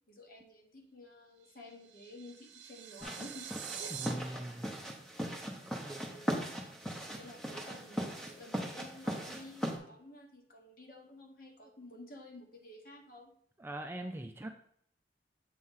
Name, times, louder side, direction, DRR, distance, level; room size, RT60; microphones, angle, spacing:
voice 1, 0.1-3.5 3.8-4.0 5.6-6.3 7.1-13.3, left 1 dB, 50° left, 1 dB, 1.3 m, -52 dB
sound 1, 1.4-4.1, right 8 dB, 80° right, 0.7 m, -45 dB
sound 2, 3.0-9.8, equal, 5° left, 0.8 m, -39 dB
voice 2, 4.0-4.7 5.7-6.0 13.6-14.6, right 1 dB, 10° right, 5 dB, 0.3 m, -42 dB
7.6 x 3.1 x 5.5 m, 0.67 s
head